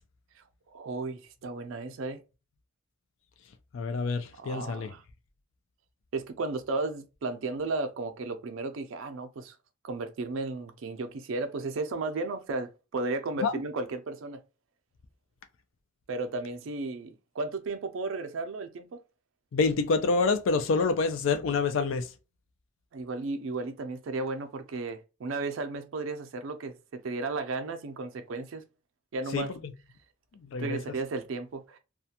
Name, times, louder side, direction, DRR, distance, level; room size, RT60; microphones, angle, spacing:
voice 1, 0.7-2.2 4.4-5.0 6.1-9.6 9.8-14.4 16.1-19.0 22.9-28.6 29.1-29.5 30.6-31.8, right 3 dB, 75° right, 0.4 m, -34 dB
voice 2, 3.7-4.9 13.4-13.5 19.5-22.1 29.3-29.4 30.5-30.8, left 4 dB, 70° left, 0.4 m, -27 dB
2.4 x 2.1 x 2.8 m
head